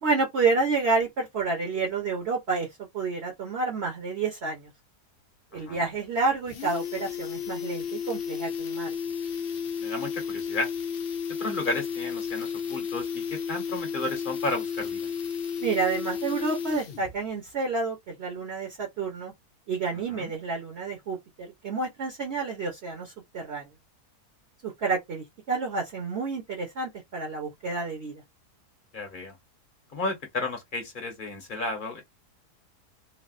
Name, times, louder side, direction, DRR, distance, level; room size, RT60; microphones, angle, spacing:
voice 1, 0.0-2.7 2.9-4.7 5.5-8.9 15.6-19.3 19.7-23.7 24.6-28.2, right 4 dB, 45° right, 1.1 m, -29 dB
voice 2, 5.5-5.8 9.8-10.7 11.4-15.1 20.1-20.3 28.9-29.4 29.9-32.0, left 2 dB, 35° left, 1.1 m, -33 dB
sound 1, 5.6-5.7 6.0-6.1 6.3-17.2 17.4-17.5, left 7 dB, 70° left, 0.5 m, -33 dB
3.3 x 2.3 x 2.4 m
omnidirectional pair, 1.7 m